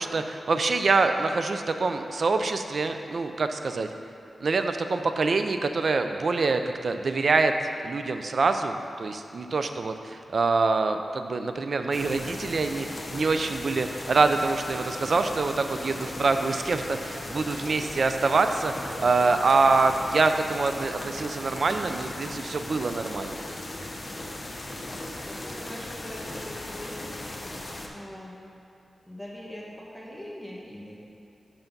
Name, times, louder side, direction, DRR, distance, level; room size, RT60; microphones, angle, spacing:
voice 1, 0.0-3.9 4.4-7.5 7.8-23.4, right 3 dB, 60° right, 7 dB, 0.4 m, -25 dB
sound 1, 11.9-27.9, left 1 dB, 35° left, 0.7 m, -37 dB
voice 2, 25.2-27.2 27.9-28.4 29.0-30.9, equal, 5° right, -4 dB, 1.4 m, -42 dB
5.7 x 5.7 x 5.3 m, 2.8 s
wide cardioid pair, 90°, 0 cm